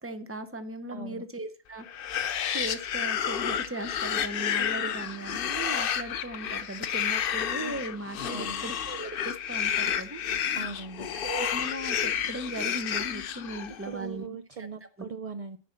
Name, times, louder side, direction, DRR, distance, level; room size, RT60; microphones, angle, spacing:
voice 1, 0.0-10.2 11.1-14.7, right 2 dB, 15° right, 9 dB, 0.6 m, -38 dB
voice 2, 0.9-1.2 8.3-8.7 10.5-11.2 13.9-15.6, right 5 dB, 65° right, 8 dB, 0.3 m, -40 dB
sound 1, 1.9-13.9, left 9 dB, 55° left, 0.7 m, -31 dB
10.0 x 4.3 x 7.3 m, 0.41 s
omnidirectional pair, 1.3 m